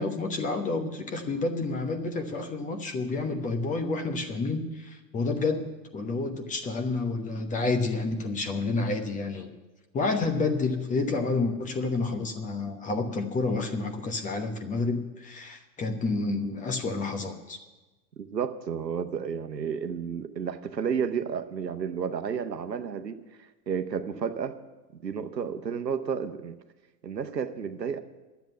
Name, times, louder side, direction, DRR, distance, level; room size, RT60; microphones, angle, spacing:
voice 1, 0.0-9.5 9.9-17.6, left 3 dB, 15° left, 6 dB, 1.0 m, -29 dB
voice 2, 18.2-24.5 25.0-26.5 27.0-28.0, right 7 dB, 80° right, 9 dB, 1.0 m, -32 dB
12.0 x 8.1 x 9.1 m, 1.1 s
figure-of-eight pair, 95°, 49 cm